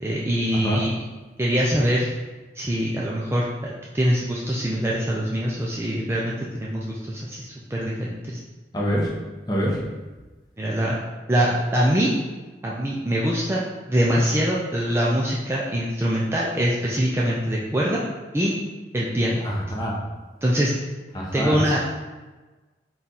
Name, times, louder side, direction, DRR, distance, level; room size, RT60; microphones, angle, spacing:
voice 1, 0.0-0.9 1.4-2.1 2.5-8.4 10.6-11.0 11.3-12.1 12.6-13.6 13.9-18.0 18.3-18.5 18.9-19.4 20.4-20.7 21.3-21.8, equal, 15° right, -5 dB, 0.3 m, -23 dB
voice 2, 8.7-9.1 9.5-9.8 19.4-20.0 21.1-21.6, equal, 20° left, -3 dB, 0.7 m, -25 dB
4.1 x 2.3 x 3.8 m, 1.2 s
head